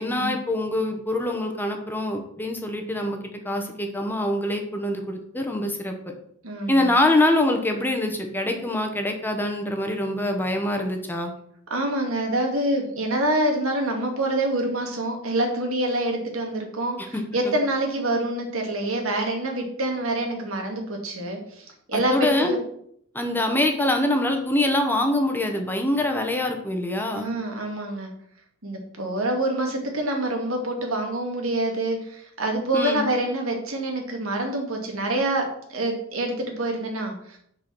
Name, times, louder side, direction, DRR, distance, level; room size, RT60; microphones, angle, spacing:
voice 1, 0.0-3.2 3.4-5.9 6.7-11.3 17.4-17.5 21.9-22.5 23.1-27.3 32.7-33.1, left 1 dB, 10° left, 3 dB, 1.1 m, -24 dB
voice 2, 6.4-6.9 11.7-22.6 27.1-28.1 28.6-37.4, right 1 dB, 85° right, 2 dB, 2.1 m, -26 dB
6.3 x 5.8 x 6.1 m, 0.68 s
head